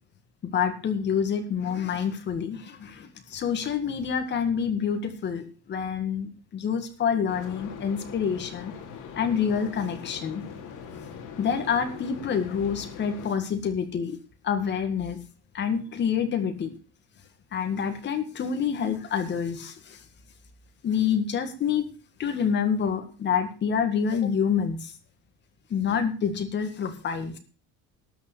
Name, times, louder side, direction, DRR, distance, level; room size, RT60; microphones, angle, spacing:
voice 1, 0.4-8.7 9.2-10.5 11.4-14.2 14.4-15.2 15.5-16.7 17.5-20.0 20.8-21.9 22.2-25.0 25.7-27.4, left 7 dB, 30° left, 6 dB, 2.0 m, -27 dB
sound 1, 7.3-13.3, left 6 dB, 55° left, 3.1 m, -41 dB
12.5 x 6.7 x 8.1 m, 0.37 s
cardioid pair, 175°, 36 cm